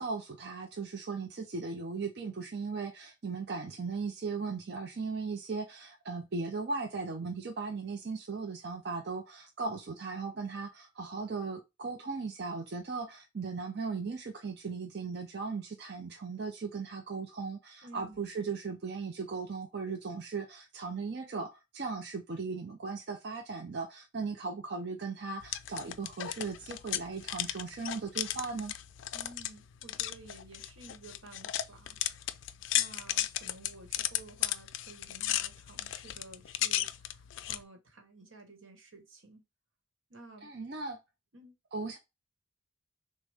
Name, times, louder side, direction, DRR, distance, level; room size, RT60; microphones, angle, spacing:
voice 1, 0.0-28.7 40.4-41.0 41.7-42.0, right 4 dB, 55° right, 0.5 m, -37 dB
voice 2, 17.8-18.3 29.1-32.0 32.7-39.4 40.1-40.5 41.3-41.6, right 3 dB, 85° right, 1.2 m, -53 dB
sound 1, 25.4-37.6, left 13 dB, 75° left, 0.3 m, -35 dB
6.2 x 2.2 x 3.4 m
head